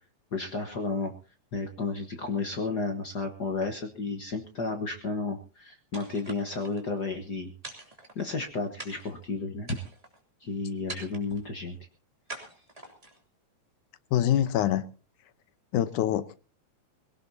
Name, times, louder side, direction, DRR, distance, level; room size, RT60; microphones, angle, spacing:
voice 1, 0.3-1.1 1.5-7.5 8.1-9.7 10.4-11.8, left 3 dB, 50° left, 1.3 m, -32 dB
sound 1, 5.9-6.8 7.6-8.4 8.8-9.2 9.6-10.2 10.9-11.4 12.3-13.2, right 2 dB, 10° right, 2.6 m, -44 dB
voice 2, 14.1-14.8 15.7-16.4, left 11 dB, 90° left, 2.4 m, -25 dB
21.5 x 17.5 x 2.7 m
omnidirectional pair, 3.4 m